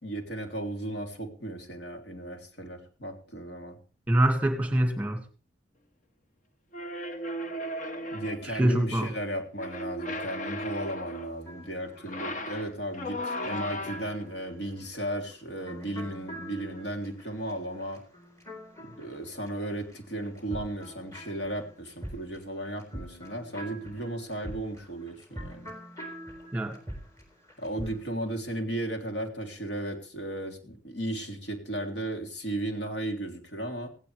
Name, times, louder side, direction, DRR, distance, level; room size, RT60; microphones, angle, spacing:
voice 1, 0.0-3.8 8.1-18.0 18.8-25.7 27.6-33.9, right 1 dB, 55° left, 3 dB, 3.3 m, -35 dB
voice 2, 4.1-5.2 8.4-9.1 26.5-26.7, right 1 dB, 5° right, 5 dB, 2.3 m, -25 dB
sound 1, 6.7-8.6 9.6-11.4 12.0-14.2, left 1 dB, 40° left, 1.3 m, -36 dB
sound 2, 11.1-19.9 20.2-28.1, equal, 15° left, 4.2 m, -45 dB
18.0 x 16.5 x 3.4 m, 0.37 s
head